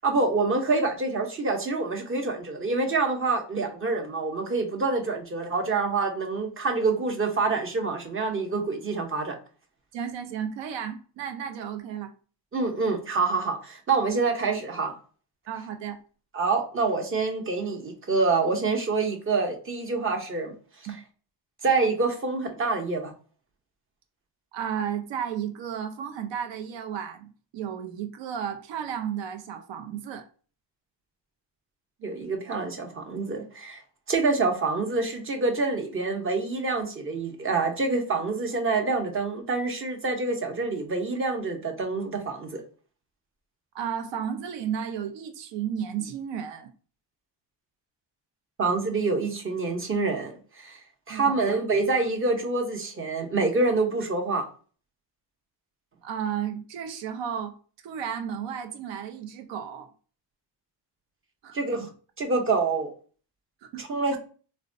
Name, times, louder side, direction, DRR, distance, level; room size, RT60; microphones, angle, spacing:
voice 1, 0.0-9.4 12.5-14.9 16.3-20.5 21.6-23.1 32.0-33.8 34.1-42.6 48.6-50.8 51.1-54.4 61.5-61.9 62.2-62.9 63.8-64.2, right 3 dB, 30° right, 0.7 m, -26 dB
voice 2, 9.9-12.1 15.5-16.0 20.9-21.0 24.5-30.3 43.7-46.7 51.1-51.3 56.0-57.6 57.8-59.9 61.4-61.9 63.6-63.8 64.1-64.2, right 8 dB, 85° right, 0.6 m, -33 dB
4.0 x 2.2 x 2.5 m
cardioid pair, 145°, 43 cm